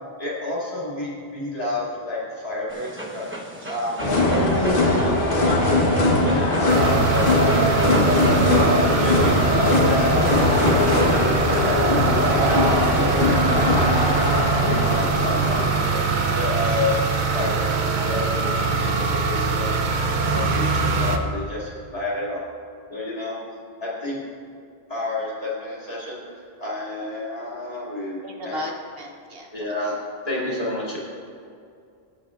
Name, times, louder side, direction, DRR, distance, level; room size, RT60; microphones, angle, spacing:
voice 1, 0.2-3.3 3.7-5.0 5.4-5.9 6.2-8.6 9.0-10.4 10.7-14.3 14.8-16.0 16.3-17.1 17.3-19.8 20.3-22.4 22.9-23.4 23.8-24.2 24.9-28.6 29.5-31.0, left 2 dB, 35° left, -7 dB, 2.6 m, -30 dB
Dog, 2.7-9.4, right 1 dB, 10° right, 0.9 m, -34 dB
sound 1, 4.0-15.8, left 2 dB, 60° left, 1.5 m, -20 dB
sound 2, 6.7-21.2, right 4 dB, 50° right, 0.8 m, -23 dB
voice 2, 28.2-29.5, equal, 65° right, 1 dB, 1.3 m, -35 dB
17.5 x 8.4 x 2.5 m, 2.4 s
omnidirectional pair, 1.1 m